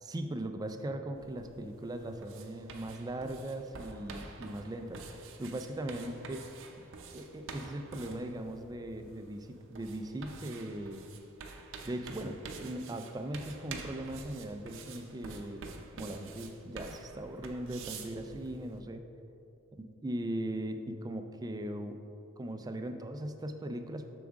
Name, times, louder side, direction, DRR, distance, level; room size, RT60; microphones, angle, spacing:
voice 1, 0.0-6.5 7.1-11.1 11.8-15.6 15.9-19.0 20.0-22.0 22.4-24.0, right 1 dB, 15° right, 7 dB, 0.3 m, -39 dB
sound 1, 1.1-18.8, right 4 dB, 60° right, 0.6 m, -48 dB
7.2 x 6.1 x 3.5 m, 2.8 s
head